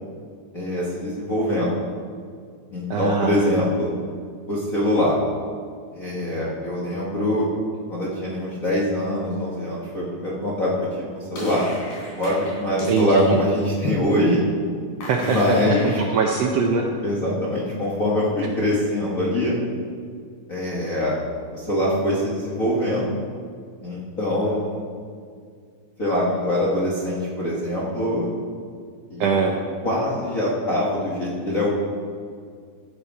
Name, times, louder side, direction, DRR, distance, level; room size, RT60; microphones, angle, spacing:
voice 1, 0.5-1.7 2.7-3.9 4.5-5.2 5.9-7.5 7.9-11.0 11.3-11.6 12.2-14.4 15.3-16.0 17.0-19.6 20.5-21.2 21.5-23.0 23.8-24.8 26.0-28.3 29.1-29.3 29.8-31.7, left 1 dB, 40° left, -6 dB, 1.2 m, -23 dB
voice 2, 2.9-3.5 12.9-13.4 15.1-15.4 15.8-16.9 18.4-18.5 29.2-29.6, right 5 dB, 70° right, 1 dB, 1.6 m, -22 dB
sound 1, 11.3-13.3 15.0-16.4, left 1 dB, 75° left, 4.6 m, -37 dB
13.0 x 8.1 x 4.8 m, 2.1 s
omnidirectional pair, 3.5 m